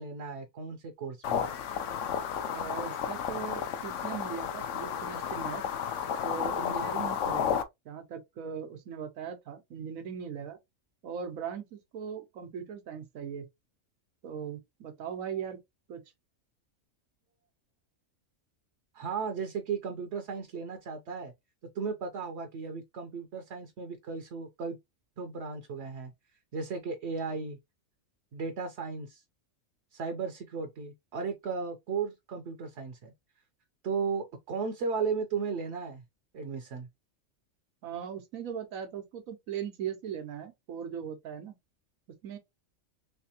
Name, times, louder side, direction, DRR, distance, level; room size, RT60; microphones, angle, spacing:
voice 1, 0.0-1.4 18.9-21.3 21.7-24.8 25.2-26.1 26.5-27.6 28.3-29.2 29.9-33.1 33.8-36.0 36.3-36.9, right 5 dB, 60° right, 0.9 m, -35 dB
sound 1, 1.2-7.6, left 8 dB, 70° left, 0.9 m, -32 dB
voice 2, 2.5-5.6 6.2-10.6 11.0-13.5 14.2-15.6 15.9-16.0 37.8-41.5 42.2-42.4, right 7 dB, 90° right, 1.3 m, -39 dB
3.3 x 3.3 x 2.8 m
omnidirectional pair, 1.4 m